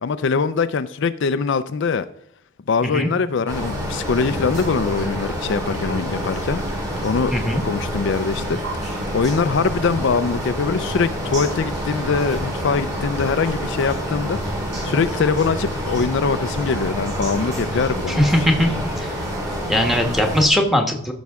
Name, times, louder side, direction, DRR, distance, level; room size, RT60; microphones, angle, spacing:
voice 1, 0.0-2.1 2.7-6.6 7.0-8.8 9.1-14.4 14.8-18.2 18.7-18.8, left 5 dB, 60° left, 11 dB, 0.4 m, -22 dB
Stream, 3.5-20.5, equal, 15° right, 1.7 m, -30 dB
sound 1, 3.5-20.5, equal, 55° right, 4.5 m, -30 dB
voice 2, 7.3-7.6 18.1-18.7 19.0-19.1 19.7-21.1, equal, ahead, 3 dB, 1.2 m, -19 dB
14.5 x 6.2 x 3.5 m, 0.73 s
head